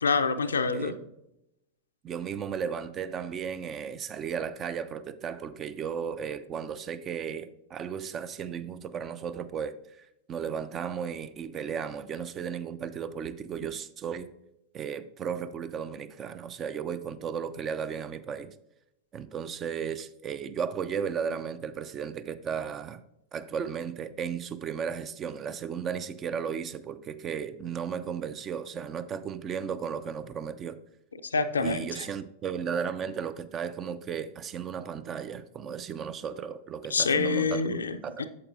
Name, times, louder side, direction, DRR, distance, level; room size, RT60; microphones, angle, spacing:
voice 1, 0.0-0.9 31.3-31.8 36.9-38.3, left 4 dB, 70° left, 0.5 m, -26 dB
voice 2, 2.0-14.3 14.7-18.5 19.1-23.0 23.3-30.8 31.6-38.3, right 7 dB, 30° right, 0.4 m, -35 dB
8.6 x 7.2 x 2.6 m
figure-of-eight pair, 90°, 0 cm